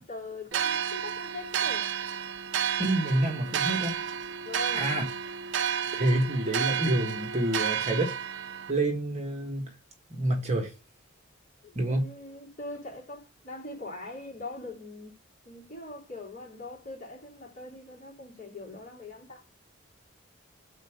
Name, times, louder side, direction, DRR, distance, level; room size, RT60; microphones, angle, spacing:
voice 1, 0.0-1.9 4.4-5.0 11.6-15.2 15.4-19.4, left 2 dB, 40° left, 3.1 m, -42 dB
sound 1, 0.5-8.7, right 8 dB, 55° right, 0.4 m, -31 dB
voice 2, 2.8-3.9 4.7-5.1 5.9-8.1 8.7-9.7 10.1-10.7 11.7-12.1, right 1 dB, 30° right, 1.4 m, -27 dB
5.3 x 4.4 x 4.9 m
head